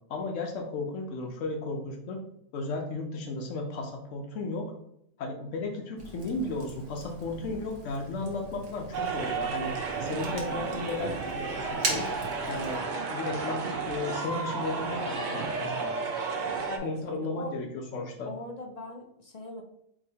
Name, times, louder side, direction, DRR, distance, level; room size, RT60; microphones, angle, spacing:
voice 1, 0.1-2.2 2.5-4.6 5.2-9.7 10.0-12.1 12.5-12.8 13.1-15.9 16.8-18.3, left 3 dB, 85° left, 2 dB, 1.0 m, -34 dB
Fire, 6.0-12.8, right 2 dB, 75° right, 1.3 m, -39 dB
sound 1, 8.9-16.8, right 4 dB, 50° right, 0.6 m, -32 dB
voice 2, 16.7-17.5 18.3-19.6, left 1 dB, 50° left, 2 dB, 0.5 m, -41 dB
4.7 x 2.9 x 2.8 m, 0.75 s
omnidirectional pair, 1.3 m